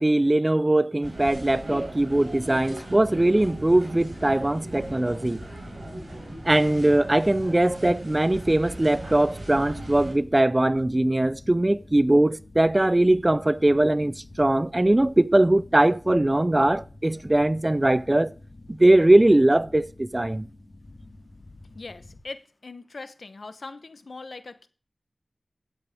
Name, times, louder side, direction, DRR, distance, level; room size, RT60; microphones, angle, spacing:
voice 1, 0.0-5.5 6.4-18.3 18.7-20.5, right 1 dB, 25° right, 0.4 m, -21 dB
sound 1, 1.0-10.1, right 1 dB, 70° right, 4.9 m, -39 dB
sound 2, 2.3-22.2, left 2 dB, 40° left, 2.8 m, -47 dB
voice 2, 21.7-24.7, left 3 dB, 70° left, 1.0 m, -41 dB
11.0 x 8.2 x 5.0 m
wide cardioid pair, 75°, 0 cm